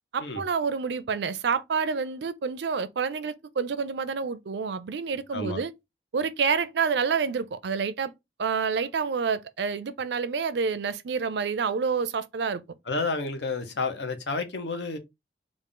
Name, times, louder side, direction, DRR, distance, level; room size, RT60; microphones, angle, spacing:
voice 1, 0.1-5.7 6.1-8.1 8.4-12.6, right 5 dB, 75° right, 0.4 m, -28 dB
voice 2, 5.3-5.6 12.9-15.0, left 3 dB, 80° left, 0.8 m, -30 dB
3.7 x 2.4 x 3.8 m
head